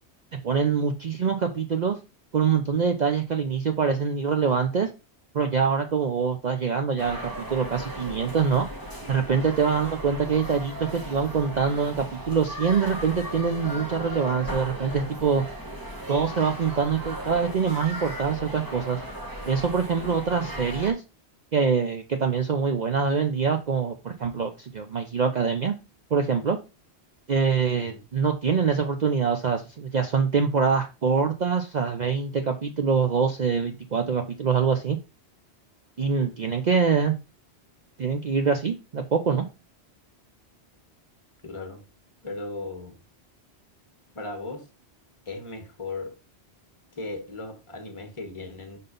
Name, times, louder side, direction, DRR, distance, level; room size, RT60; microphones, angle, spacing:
voice 1, 0.4-2.0 2.3-4.9 5.3-8.7 9.1-15.4 16.1-19.0 19.4-21.0 21.5-25.7 26.1-26.6 27.3-35.0 36.0-37.2 38.0-39.5, right 6 dB, 45° right, 0.7 m, -24 dB
sound 1, 7.0-20.9, right 1 dB, 20° right, 1.3 m, -37 dB
voice 2, 27.7-28.0 41.4-41.8 42.2-43.0 44.1-44.7 45.2-46.1 47.0-48.8, left 3 dB, 25° left, 1.4 m, -37 dB
5.6 x 3.9 x 5.1 m
omnidirectional pair, 1.1 m